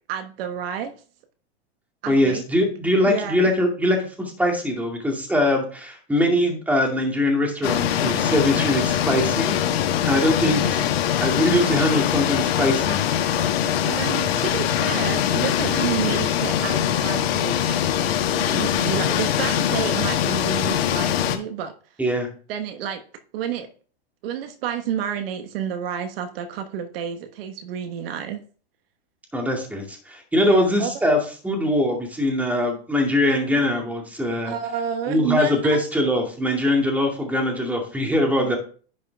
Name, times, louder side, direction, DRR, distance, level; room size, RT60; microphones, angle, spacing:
voice 1, 0.1-1.0 2.0-2.4 3.0-3.4 10.3-10.7 13.8-17.8 18.3-21.7 22.5-23.0 23.3-23.7 24.2-28.4 30.4-30.9 33.4-33.6 34.4-35.8 38.4-38.5, right 9 dB, 65° right, 8 dB, 1.3 m, -30 dB
voice 2, 2.1-9.5 10.0-10.9 11.2-13.0 22.0-22.3 29.3-31.2 31.4-34.5 35.1-38.6, left 1 dB, 5° right, 1 dB, 2.3 m, -22 dB
sound 1, 7.6-21.4, left 9 dB, 65° left, 1.4 m, -22 dB
10.5 x 5.7 x 3.5 m, 0.41 s
hypercardioid pair, 125°, 32 cm